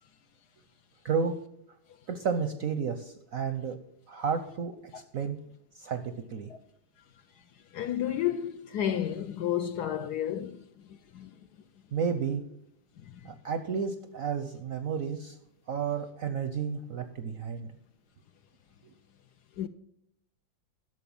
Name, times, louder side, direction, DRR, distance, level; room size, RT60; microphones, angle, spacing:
voice 1, 1.0-1.3 2.1-3.8 4.1-4.7 5.1-5.4 5.8-6.5 11.9-12.4 13.2-15.4 15.7-17.7 18.8-18.9, right 6 dB, 65° right, 0.9 m, -31 dB
voice 2, 7.7-10.6 10.9-11.5 13.0-13.3 19.6-19.7, left 10 dB, 70° left, 1.0 m, -32 dB
11.0 x 6.6 x 7.1 m
omnidirectional pair, 2.1 m